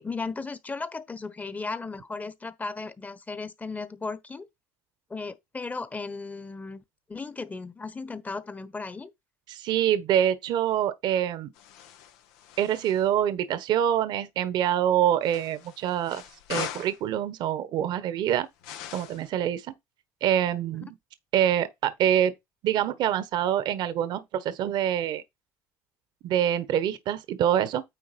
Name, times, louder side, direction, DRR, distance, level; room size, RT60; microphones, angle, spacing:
voice 1, 0.0-4.5 5.1-6.8 7.1-9.1, left 4 dB, 20° left, 1.2 m, -36 dB
voice 2, 9.5-11.5 12.6-16.2 16.5-18.5 18.9-19.7 20.2-21.0 21.3-22.3 22.6-25.2 26.2-27.8, right 10 dB, 60° right, 1.2 m, -25 dB
sound 1, 11.5-13.1 15.2-17.0 18.6-19.3, left 10 dB, 85° left, 1.0 m, -40 dB
9.4 x 3.5 x 5.2 m
supercardioid pair, 90°, 8 cm